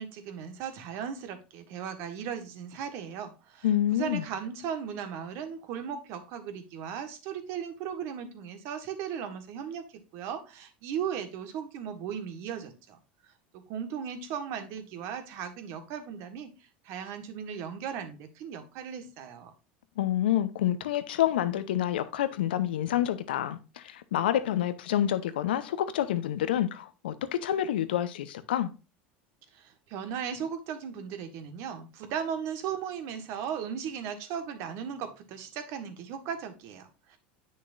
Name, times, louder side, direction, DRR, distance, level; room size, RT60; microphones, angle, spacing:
voice 1, 0.0-3.7 3.9-9.8 10.1-13.0 13.5-16.5 16.8-19.5 29.5-37.2, right 8 dB, 60° right, 1.5 m, -37 dB
voice 2, 3.6-4.2 20.0-28.7, left 11 dB, 85° left, 0.7 m, -28 dB
8.3 x 6.3 x 2.6 m
hypercardioid pair, 95°, 5 cm